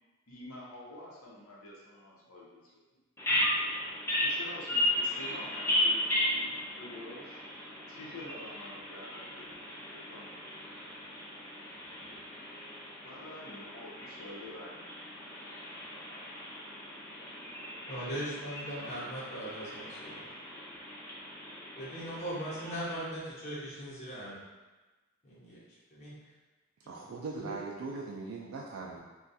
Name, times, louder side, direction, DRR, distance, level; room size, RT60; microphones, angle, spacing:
voice 1, 0.3-2.8 4.2-7.4 7.9-9.5 9.9-10.3 13.0-14.8, left 1 dB, 75° left, -4 dB, 0.8 m, -48 dB
Bird vocalization bird call bird song, 3.2-23.0, left 1 dB, 10° left, 0.4 m, -36 dB
voice 2, 17.9-20.2 21.8-24.4 25.2-25.6 25.9-26.1 27.3-27.5, equal, 35° left, -8 dB, 0.9 m, -39 dB
voice 3, 26.9-29.0, right 3 dB, 70° right, -2 dB, 0.3 m, -40 dB
2.4 x 2.2 x 3.9 m, 1.2 s
head